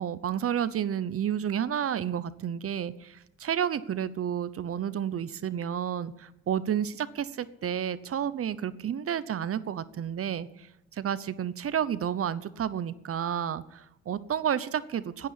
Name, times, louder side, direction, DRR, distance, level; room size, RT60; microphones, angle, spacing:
voice 1, 0.0-10.5 11.0-15.3, right 9 dB, 50° right, 16 dB, 0.9 m, -31 dB
11.0 x 9.1 x 10.0 m, 0.86 s
cardioid pair, 90°, 30 cm